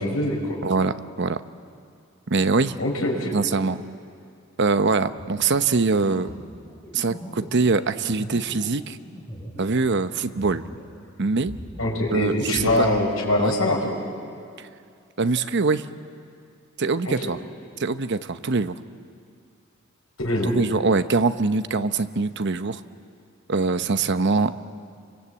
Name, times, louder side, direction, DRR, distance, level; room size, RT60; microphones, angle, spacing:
voice 1, 0.0-0.6 2.8-3.3 11.8-13.9 17.1-17.3 20.2-20.5, left 1 dB, 85° left, 0 dB, 5.7 m, -23 dB
voice 2, 0.6-1.4 2.3-2.8 3.3-3.8 4.6-6.3 6.9-9.0 9.6-10.6 11.2-11.6 12.1-12.9 13.4-13.6 15.2-15.8 16.8-17.4 17.8-18.8 20.5-22.8 23.5-24.6, right 4 dB, 55° right, 11 dB, 0.8 m, -23 dB
sound 1, 5.2-10.9 11.2-12.8, equal, 10° left, 6.7 m, -40 dB
28.5 x 23.5 x 8.4 m, 2.3 s
head